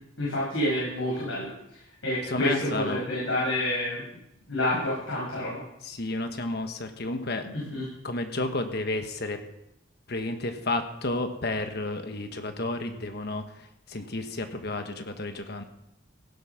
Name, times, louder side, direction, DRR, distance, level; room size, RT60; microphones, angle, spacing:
voice 1, 0.2-4.0 4.5-5.6 7.5-7.9, left 1 dB, 85° left, -7 dB, 6.1 m, -29 dB
voice 2, 2.3-3.0 5.8-9.4 10.1-15.6, left 2 dB, 50° left, 7 dB, 1.3 m, -32 dB
17.0 x 7.8 x 5.9 m, 0.81 s
head